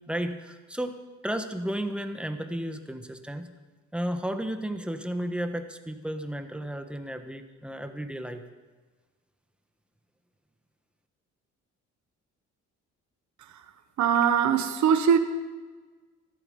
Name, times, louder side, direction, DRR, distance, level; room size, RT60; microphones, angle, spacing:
voice 1, 0.1-1.0 1.2-3.5 3.9-8.4, right 1 dB, 5° right, 7 dB, 1.3 m, -33 dB
voice 2, 14.0-15.2, right 8 dB, 70° right, 8 dB, 1.2 m, -21 dB
14.0 x 12.5 x 5.4 m, 1.4 s
cardioid pair, 90°, 30 cm